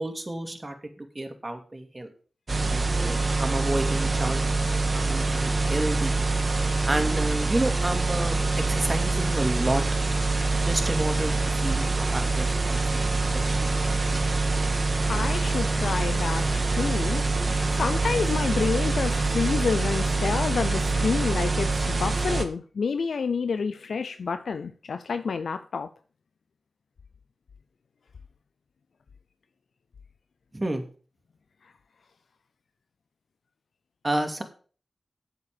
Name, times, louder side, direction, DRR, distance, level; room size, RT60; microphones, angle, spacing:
voice 1, 0.0-2.1 2.7-4.4 4.9-6.2 6.9-9.8 10.6-11.3 11.6-14.0 30.5-30.8 34.0-34.4, right 1 dB, 30° right, 2.5 m, -30 dB
sound 1, 2.5-22.4, right 3 dB, 50° right, 1.8 m, -25 dB
voice 2, 15.1-17.4 17.8-25.9, left 5 dB, 85° left, 0.5 m, -29 dB
8.3 x 7.0 x 6.8 m
cardioid pair, 45°, 0 cm